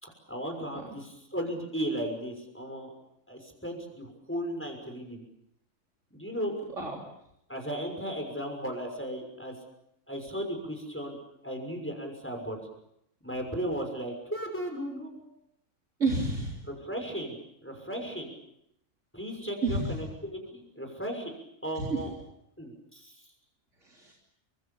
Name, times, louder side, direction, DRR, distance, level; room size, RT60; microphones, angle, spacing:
voice 1, 0.0-2.9 3.3-5.2 6.1-6.5 7.5-9.5 10.1-11.2 11.4-12.6 13.2-15.3 16.7-17.4 17.6-18.3 19.1-21.3 21.6-22.1 22.6-23.2, equal, 10° left, 3 dB, 6.1 m, -36 dB
voice 2, 16.0-16.6 19.6-19.9 21.8-21.9 23.8-24.1, right 3 dB, 65° right, 0 dB, 4.0 m, -29 dB
29.0 x 25.5 x 7.2 m, 0.77 s
omnidirectional pair, 1.4 m